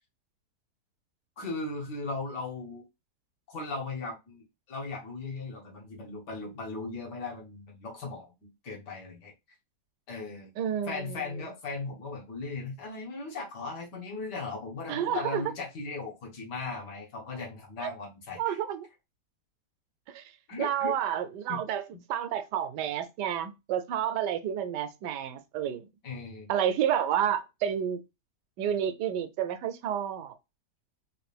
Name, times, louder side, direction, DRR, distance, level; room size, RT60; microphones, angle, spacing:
voice 1, 1.4-2.9 3.5-9.3 10.1-10.5 10.9-18.6 20.5-21.0 21.5-21.6 26.0-26.5, left 3 dB, 80° left, 1.9 m, -37 dB
voice 2, 10.6-11.3 14.9-15.4 17.8-17.9 18.4-18.9 20.1-20.2 20.6-21.8 22.1-25.8 26.5-28.0 28.6-30.4, right 9 dB, 85° right, 1.2 m, -30 dB
4.9 x 2.5 x 3.3 m
omnidirectional pair, 1.8 m